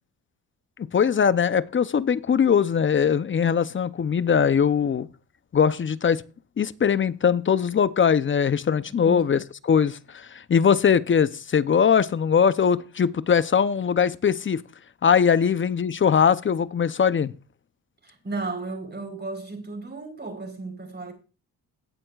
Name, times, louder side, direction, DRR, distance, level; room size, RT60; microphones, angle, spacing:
voice 1, 0.9-5.1 5.5-6.2 6.6-14.6 15.0-17.3, left 7 dB, 35° left, 0.6 m, -21 dB
voice 2, 9.0-9.4 18.0-21.1, right 3 dB, 30° right, 4.1 m, -34 dB
18.0 x 7.7 x 2.4 m
cardioid pair, 65°, 34 cm